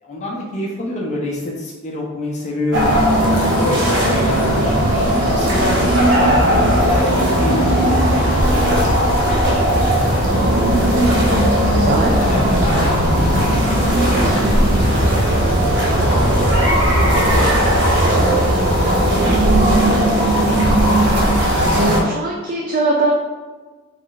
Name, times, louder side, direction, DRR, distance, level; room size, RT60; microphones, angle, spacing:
voice 1, 0.0-3.0 3.5-5.8 6.2-10.3 11.0-11.3 12.1-15.0 15.9-20.7, left 1 dB, 30° left, -3 dB, 0.6 m, -28 dB
sound 1, 2.7-22.0, equal, 55° right, 0.7 m, -16 dB
voice 2, 11.8-12.1 21.8-23.1, right 2 dB, 40° right, -1 dB, 0.3 m, -20 dB
3.2 x 2.4 x 3.7 m, 1.3 s
head